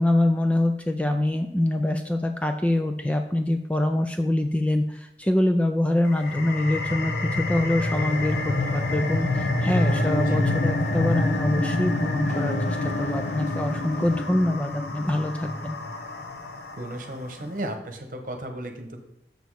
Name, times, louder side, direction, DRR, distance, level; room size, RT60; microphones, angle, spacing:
voice 1, 0.0-15.8 17.4-17.5, left 1 dB, 5° left, 5 dB, 0.3 m, -25 dB
sound 1, 6.1-17.2, left 2 dB, 70° left, 0.9 m, -27 dB
sound 2, 7.9-14.2, equal, 40° left, 0.8 m, -38 dB
voice 2, 16.8-19.0, right 1 dB, 50° right, 5 dB, 1.1 m, -34 dB
6.8 x 6.2 x 4.8 m, 0.83 s
head